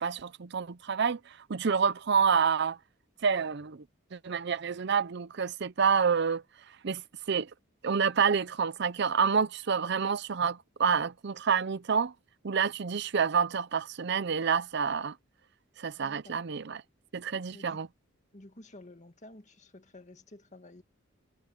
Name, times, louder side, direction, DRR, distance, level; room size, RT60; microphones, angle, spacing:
voice 1, 0.0-2.8 3.2-3.8 4.1-6.4 6.8-7.0 7.3-7.5 7.8-12.1 12.4-15.1 15.8-16.8 17.1-17.9, right 6 dB, 55° right, 0.6 m, -28 dB
voice 2, 16.0-16.4 17.5-17.8 18.3-20.8, left 2 dB, 35° left, 2.0 m, -51 dB
head